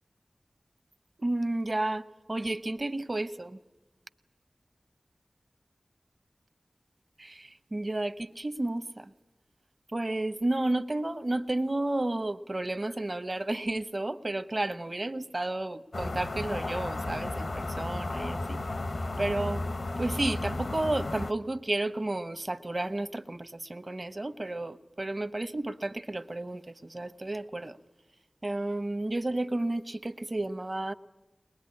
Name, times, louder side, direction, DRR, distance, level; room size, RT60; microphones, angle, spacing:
voice 1, 1.2-3.6 7.2-9.1 9.9-18.6 19.2-19.6 20.0-27.8 28.4-30.9, right 2 dB, 45° right, 12 dB, 1.0 m, -32 dB
sound 1, 15.9-21.3, left 2 dB, 80° left, 0.9 m, -33 dB
22.0 x 21.0 x 9.7 m, 1.1 s
wide cardioid pair, 45°, 0 cm